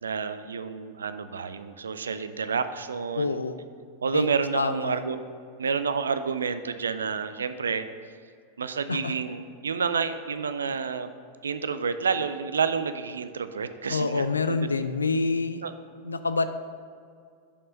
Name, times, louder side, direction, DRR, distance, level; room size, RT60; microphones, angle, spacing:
voice 1, 0.0-3.4 4.0-5.2 5.6-7.9 8.6-11.1 11.4-14.8 15.6-15.7, right 5 dB, 70° right, 11 dB, 0.4 m, -29 dB
voice 2, 3.1-3.6 4.1-4.3 4.5-5.0 8.9-9.1 10.6-10.7 13.9-15.6 16.0-16.4, left 4 dB, 75° left, 10 dB, 0.4 m, -27 dB
6.6 x 5.4 x 5.1 m, 2.2 s
figure-of-eight pair, 90°, 0 cm